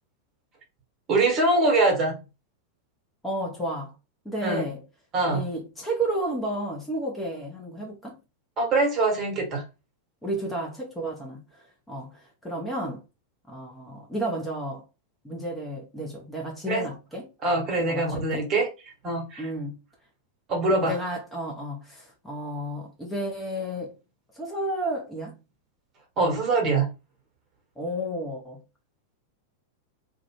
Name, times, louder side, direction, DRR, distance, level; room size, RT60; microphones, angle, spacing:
voice 1, 1.1-2.2 4.4-4.6 5.1-5.4 8.6-9.6 16.7-16.9 17.4-18.7 19.0-19.5 20.5-21.0 26.2-26.9, right 2 dB, 30° right, 1.1 m, -23 dB
voice 2, 3.2-3.9 4.2-4.8 5.3-8.2 10.2-13.0 13.5-14.8 15.2-17.3 17.8-18.5 19.4-19.7 20.7-23.9 24.3-25.3 27.8-28.6, right 1 dB, 10° left, 0.7 m, -32 dB
2.4 x 2.2 x 3.0 m
figure-of-eight pair, 90°, 0 cm